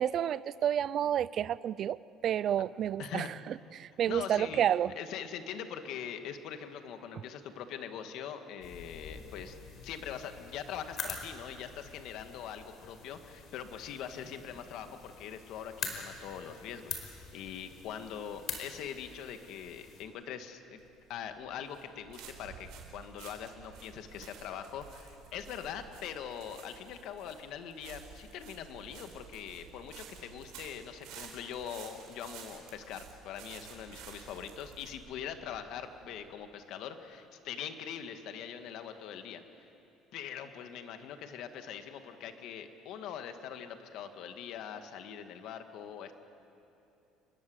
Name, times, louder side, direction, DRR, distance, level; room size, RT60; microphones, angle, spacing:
voice 1, 0.0-2.0 2.2-4.9, right 10 dB, 45° right, 19 dB, 0.5 m, -30 dB
voice 2, 3.0-3.3 4.1-4.6 5.0-9.6 9.8-20.8 21.1-39.4 40.1-46.1, left 8 dB, 65° left, 7 dB, 2.1 m, -42 dB
sound 1, 8.6-20.0, left 6 dB, 50° left, 4.5 m, -45 dB
sound 2, 20.8-36.3, right 7 dB, 75° right, 4.7 m, -52 dB
28.5 x 22.0 x 8.2 m, 2.8 s
cardioid pair, 135°, 0 cm